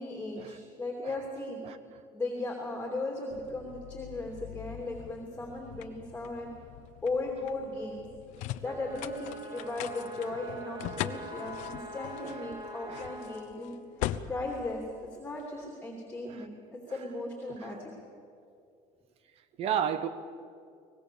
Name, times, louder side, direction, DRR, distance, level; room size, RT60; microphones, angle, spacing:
voice 1, 0.0-1.6 2.1-6.5 7.0-8.1 8.6-13.7 14.3-14.8 15.2-17.9, left 2 dB, 10° left, 0 dB, 2.8 m, -37 dB
sound 1, 3.3-15.7, left 13 dB, 70° left, 0.8 m, -42 dB
sound 2, 8.6-13.5, right 2 dB, 30° right, 2.0 m, -44 dB
voice 2, 19.6-20.1, right 9 dB, 50° right, 12 dB, 1.3 m, -32 dB
24.0 x 19.5 x 7.0 m, 2.4 s
cardioid pair, 140°, 13 cm